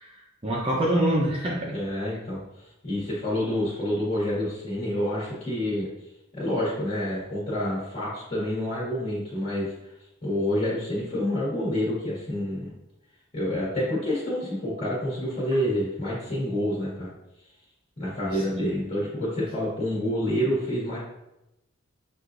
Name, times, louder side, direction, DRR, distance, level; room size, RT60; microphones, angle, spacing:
voice 1, 0.0-1.7 18.3-18.7, right 1 dB, 25° right, -4 dB, 0.6 m, -26 dB
voice 2, 1.7-5.9 6.3-9.9 10.2-12.7 13.3-17.1 18.0-21.0, left 1 dB, 30° left, -9 dB, 1.5 m, -28 dB
6.2 x 2.5 x 2.5 m, 0.89 s
head